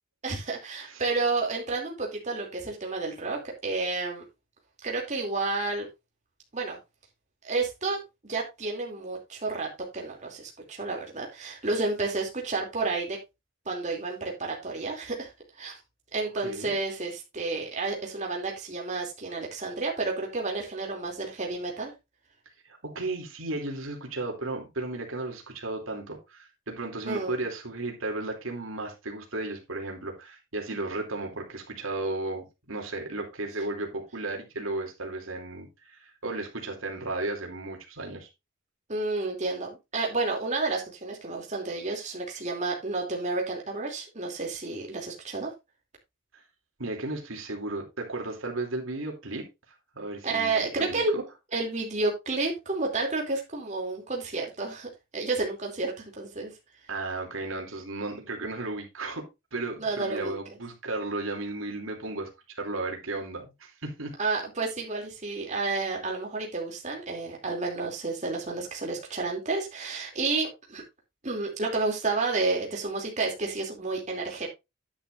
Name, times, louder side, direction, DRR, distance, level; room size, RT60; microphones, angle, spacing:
voice 1, 0.2-4.2 4.8-5.9 6.5-6.8 7.4-13.2 13.7-15.3 15.6-15.8 16.1-21.9 27.1-27.4 38.9-45.5 50.2-51.2 51.5-56.5 59.8-60.6 64.2-70.8 71.2-74.5, right 3 dB, 35° right, 2.8 m, -31 dB
voice 2, 16.3-16.8 22.6-38.3 46.8-49.5 49.9-51.2 56.9-64.2, right 2 dB, 85° right, 2.9 m, -34 dB
10.5 x 9.8 x 2.6 m
head